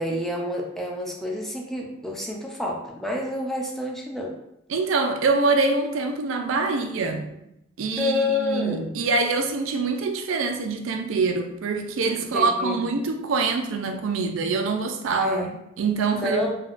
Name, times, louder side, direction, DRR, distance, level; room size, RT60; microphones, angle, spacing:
voice 1, 0.0-4.3 8.0-8.9 12.3-12.9 15.2-15.5 16.1-16.5, left 2 dB, ahead, 0.4 m, -28 dB
voice 2, 4.7-7.3 7.8-16.5, right 3 dB, 85° right, 0.4 m, -25 dB
3.4 x 2.2 x 2.4 m
head